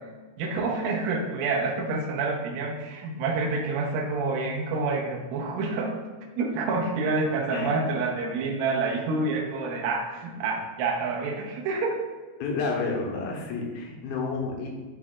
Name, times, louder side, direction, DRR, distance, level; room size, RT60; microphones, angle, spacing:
voice 1, 0.4-5.9 6.4-12.0, right 3 dB, 75° right, -1 dB, 2.4 m, -28 dB
voice 2, 12.4-14.7, left 4 dB, 75° left, -1 dB, 2.8 m, -30 dB
11.0 x 4.1 x 2.4 m, 1.3 s
omnidirectional pair, 4.6 m